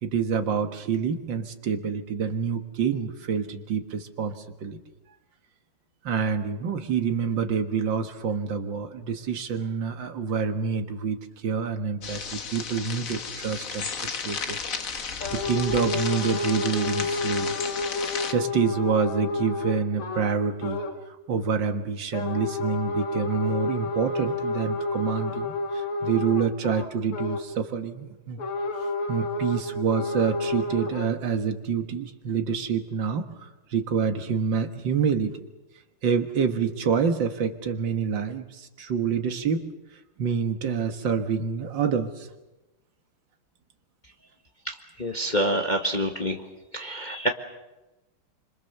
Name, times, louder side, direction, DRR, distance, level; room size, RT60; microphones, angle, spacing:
voice 1, 0.0-4.8 6.0-13.9 14.2-14.6 14.9-17.6 18.3-20.8 21.3-28.4 29.1-35.4 36.0-39.6 40.2-42.3, right 6 dB, 60° right, 6 dB, 2.2 m, -27 dB
sound 1, 12.0-18.3, left 5 dB, 45° left, 1.6 m, -33 dB
sound 2, 15.2-20.3 20.6-21.0 22.1-27.5 28.4-31.1, left 2 dB, 85° left, 2.8 m, -30 dB
voice 2, 44.7-46.4 46.7-47.3, equal, 25° left, 3 dB, 1.4 m, -27 dB
26.5 x 25.5 x 6.7 m, 1.0 s
omnidirectional pair, 2.4 m